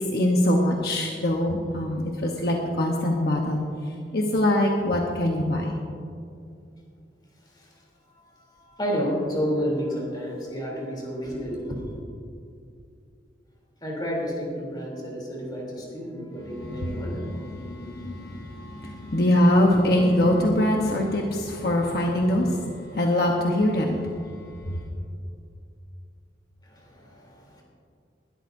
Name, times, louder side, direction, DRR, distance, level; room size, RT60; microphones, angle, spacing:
voice 1, 0.0-3.6 4.1-5.8 16.5-24.0 24.6-24.8, left 1 dB, 60° left, 0 dB, 1.1 m, -23 dB
voice 2, 8.1-12.0 13.8-17.3 26.6-27.6, equal, 25° left, -2 dB, 3.3 m, -31 dB
20.0 x 13.0 x 2.7 m, 2.4 s
head